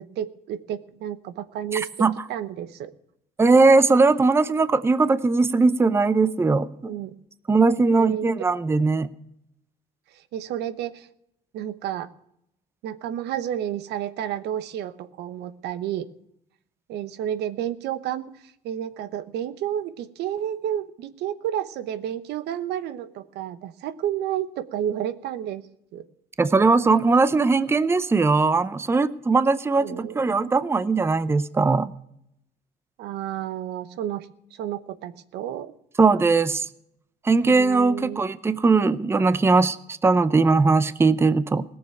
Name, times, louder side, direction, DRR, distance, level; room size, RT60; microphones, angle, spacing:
voice 1, 0.0-2.9 6.8-7.1 7.9-8.3 10.1-11.1 11.5-12.1 12.8-16.1 16.9-25.6 25.9-26.0 29.8-30.2 33.0-35.7 37.4-38.2, right 10 dB, 80° right, 13 dB, 1.0 m, -31 dB
voice 2, 1.7-2.1 3.4-6.9 7.5-9.1 26.4-31.9 36.0-36.7 37.2-41.6, right 3 dB, 15° right, 15 dB, 0.6 m, -20 dB
17.5 x 7.2 x 9.0 m, 0.76 s
cardioid pair, 110°, 17 cm